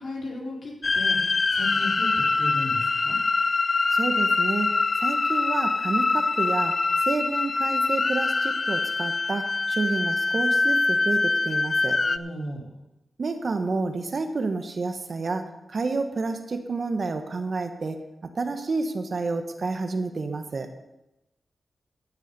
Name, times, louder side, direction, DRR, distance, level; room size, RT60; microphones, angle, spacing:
voice 1, 0.0-3.2 12.0-12.6, left 1 dB, 65° left, -2 dB, 4.0 m, -35 dB
sound 1, 0.8-12.2, left 3 dB, 50° left, 0.5 m, -24 dB
voice 2, 3.9-4.7 5.0-6.7 7.1-12.0 13.2-15.4 15.7-18.0 18.4-20.7, right 3 dB, 60° right, 7 dB, 1.3 m, -29 dB
15.5 x 7.4 x 5.4 m, 0.95 s
cardioid pair, 50°, 0 cm